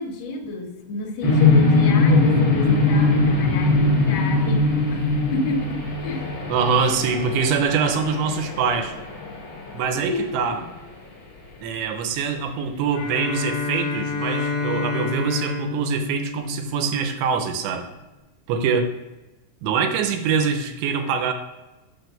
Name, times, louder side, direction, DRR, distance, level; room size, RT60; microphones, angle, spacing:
voice 1, 0.0-5.1 5.3-6.3 10.1-10.7, left 2 dB, 90° left, 0 dB, 1.4 m, -31 dB
sound 1, 1.2-10.1, left 3 dB, 50° left, 1.3 m, -20 dB
voice 2, 6.5-8.9 9.7-10.6 11.6-17.9 18.5-18.9 19.6-21.3, right 5 dB, 85° right, 6 dB, 2.9 m, -24 dB
Bowed string instrument, 12.9-17.3, left 4 dB, 75° left, 1.8 m, -29 dB
6.2 x 4.5 x 6.6 m, 1.1 s
omnidirectional pair, 5.1 m